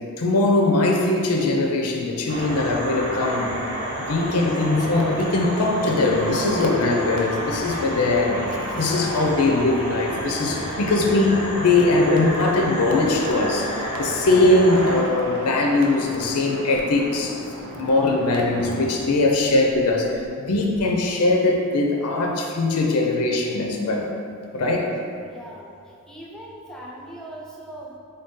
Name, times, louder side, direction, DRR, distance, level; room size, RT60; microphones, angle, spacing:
voice 1, 0.2-3.5 4.0-17.4 17.8-24.1 24.5-25.0, left 2 dB, 85° left, 1 dB, 0.5 m, -21 dB
sound 1, 2.3-15.0, equal, 90° right, 1.2 m, -30 dB
sound 2, 6.2-20.3 20.6-20.8, equal, 70° right, 0.5 m, -36 dB
voice 2, 24.9-25.7 26.1-28.0, right 1 dB, 5° left, -3 dB, 0.4 m, -40 dB
3.9 x 2.7 x 3.6 m, 2.4 s
head